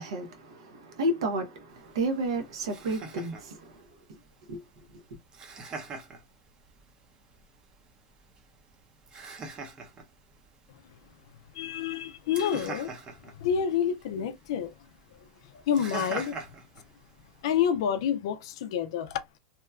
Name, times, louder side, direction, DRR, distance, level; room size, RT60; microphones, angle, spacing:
voice 1, 0.0-3.7 4.1-4.2 4.5-4.6 4.9-5.0, right 1 dB, 80° right, 0.8 m, -32 dB
Laughter, 1.7-17.7, right 4 dB, 30° right, 0.7 m, -45 dB
voice 2, 11.5-12.9 13.4-14.7 15.5-16.4 17.4-19.2, left 8 dB, 70° left, 0.4 m, -28 dB
2.8 x 2.2 x 2.3 m
supercardioid pair, 120°, 3 cm